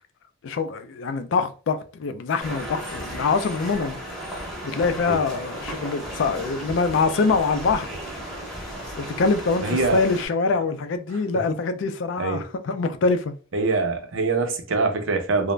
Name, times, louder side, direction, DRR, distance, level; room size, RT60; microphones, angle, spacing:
voice 1, 0.4-4.0 4.6-8.0 9.0-13.3, left 4 dB, 65° left, 0.4 m, -24 dB
sound 1, 2.4-10.3, equal, 5° left, 0.7 m, -35 dB
voice 2, 9.6-10.0 12.2-12.4 13.5-15.5, right 3 dB, 70° right, 0.6 m, -24 dB
2.4 x 2.1 x 3.1 m
head